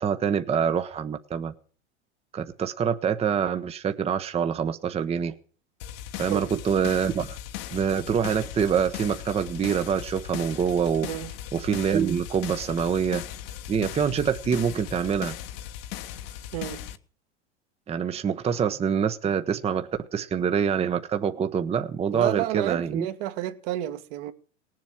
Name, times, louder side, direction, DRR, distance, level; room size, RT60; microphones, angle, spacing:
voice 1, 0.0-1.5 2.3-5.3 6.2-7.4 7.7-11.1 11.5-13.2 13.7-15.3 17.9-23.1, right 7 dB, 20° right, 0.9 m, -25 dB
sound 1, 5.8-17.0, left 11 dB, 55° left, 1.3 m, -38 dB
voice 2, 16.5-16.8 22.1-24.3, right 14 dB, 55° right, 1.8 m, -30 dB
18.5 x 7.6 x 8.7 m
hypercardioid pair, 115°, 35 cm